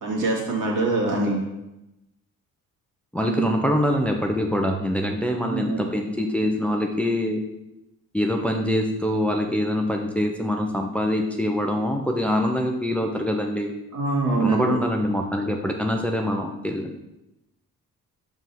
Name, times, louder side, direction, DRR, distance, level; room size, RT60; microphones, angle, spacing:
voice 1, 0.0-1.4 3.2-3.5 5.3-5.8 13.9-14.7, right 2 dB, 65° right, -2 dB, 2.0 m, -24 dB
voice 2, 3.1-7.4 8.1-13.7 14.4-16.9, left 1 dB, 5° left, 2 dB, 0.7 m, -24 dB
5.2 x 3.8 x 5.8 m, 0.92 s
cardioid pair, 80°, 34 cm